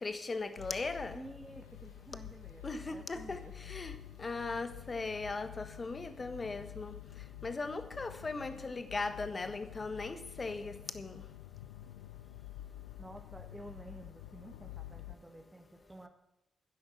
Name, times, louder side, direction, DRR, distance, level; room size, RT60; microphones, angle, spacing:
voice 1, 0.0-1.2 2.6-6.9 7.4-11.2, left 3 dB, 40° left, 1.3 m, -38 dB
sound 1, 0.6-15.1, left 13 dB, 90° left, 0.3 m, -49 dB
voice 2, 1.1-3.8 12.4-12.5 13.0-16.1, right 1 dB, 15° right, 1.5 m, -51 dB
11.0 x 10.0 x 6.1 m
hypercardioid pair, 40°, 0 cm